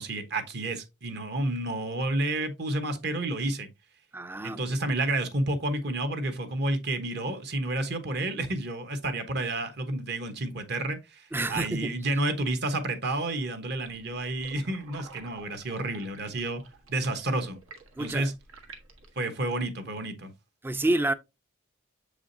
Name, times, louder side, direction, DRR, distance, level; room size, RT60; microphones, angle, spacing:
voice 1, 0.0-3.7 4.4-16.6 16.9-17.6 18.0-18.3 19.2-20.3, right 2 dB, 55° right, 1.1 m, -30 dB
voice 2, 4.1-4.6 11.3-11.9 18.0-18.3 20.6-21.1, right 2 dB, 10° right, 0.4 m, -28 dB
sound 1, 13.8-19.2, right 4 dB, 90° right, 1.4 m, -50 dB
7.4 x 4.9 x 2.7 m
head